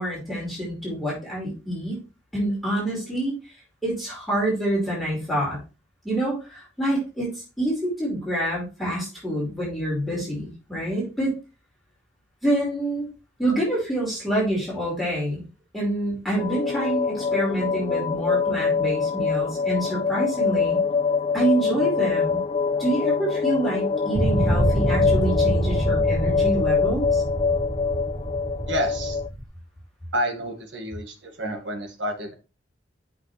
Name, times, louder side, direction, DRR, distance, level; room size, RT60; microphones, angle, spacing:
voice 1, 0.0-2.0 2.3-3.3 3.8-5.6 6.0-7.3 7.6-11.3 12.4-13.1 13.4-15.4 15.7-20.8 21.3-22.4 22.8-27.2, right 1 dB, ahead, -6 dB, 5.2 m, -27 dB
sound 1, 16.4-29.3, left 5 dB, 30° left, 0.3 m, -24 dB
sound 2, 24.1-29.4, right 1 dB, 30° right, 1.0 m, -26 dB
voice 2, 28.7-29.2 30.1-32.3, equal, 75° right, 4 dB, 2.2 m, -29 dB
8.5 x 6.2 x 3.4 m, 0.30 s
head